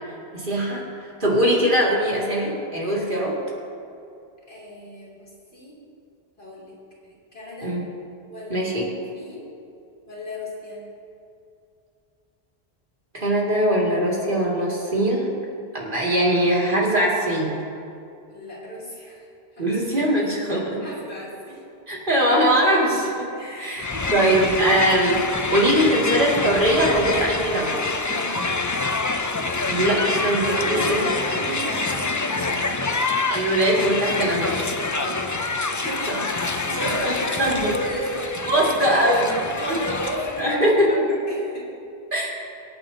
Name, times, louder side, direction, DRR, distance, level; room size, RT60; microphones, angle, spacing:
voice 1, 0.3-3.4 7.6-7.9 8.5-8.9 13.1-15.3 15.7-17.6 19.6-20.8 21.9-23.3 23.6-23.8 24.1-27.8 29.7-31.1 33.3-34.8 36.1-36.2 37.0-37.8 38.5-39.3 39.7-39.8 40.4-41.0 42.1-42.3, right 1 dB, 50° right, -5 dB, 2.8 m, -21 dB
voice 2, 4.5-5.8 6.4-6.7 7.0-7.8 8.3-8.7 9.1-9.5 10.1-10.8 18.3-19.3 19.5-19.8 20.8-21.6 23.3-24.7 28.1-28.6 30.5-33.0 34.9-35.3 35.7-36.1 36.4-39.0 39.5-41.0 41.3-41.7, equal, 70° left, -6 dB, 3.7 m, -34 dB
Crowd, 23.8-40.5, left 3 dB, 30° left, 0.3 m, -26 dB
25.5 x 8.6 x 2.9 m, 2.5 s
omnidirectional pair, 1.1 m